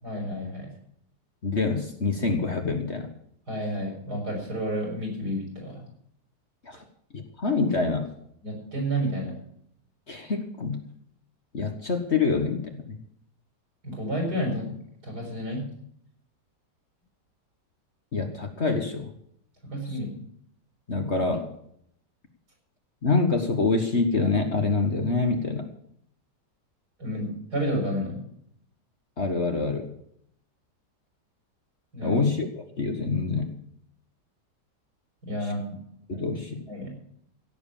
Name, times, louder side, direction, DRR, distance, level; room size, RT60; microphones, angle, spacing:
voice 1, 0.0-0.7 3.5-5.8 6.7-6.8 8.4-9.3 13.8-15.6 19.7-20.2 27.0-28.2 31.9-32.2 35.3-35.6 36.7-36.9, equal, 65° right, 1 dB, 6.7 m, -30 dB
voice 2, 1.4-3.1 6.6-6.8 7.1-8.1 10.1-10.9 11.5-13.0 18.1-19.1 20.9-21.5 23.0-25.7 29.2-29.9 32.0-32.5 32.8-33.6 36.1-36.7, left 4 dB, 40° left, 5 dB, 1.7 m, -26 dB
16.5 x 7.9 x 7.3 m, 0.70 s
omnidirectional pair, 1.9 m